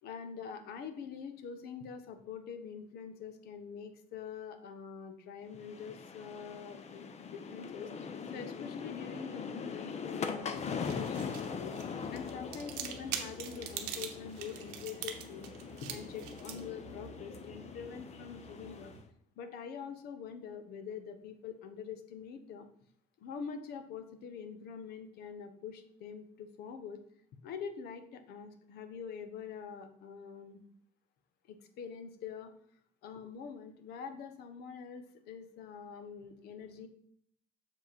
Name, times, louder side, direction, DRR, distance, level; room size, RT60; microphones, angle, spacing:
voice 1, 0.0-7.9 8.3-11.7 12.1-15.5 15.8-18.9 19.4-22.7 23.2-27.0 27.4-30.6 31.5-32.5 33.0-36.9, left 6 dB, 70° left, 9 dB, 1.0 m, -45 dB
sound 1, 5.5-19.0, left 6 dB, 40° left, 0.8 m, -42 dB
sound 2, 10.6-19.0, right 9 dB, 90° right, 0.8 m, -45 dB
6.9 x 4.9 x 4.3 m, 0.66 s
supercardioid pair, 85°, 17 cm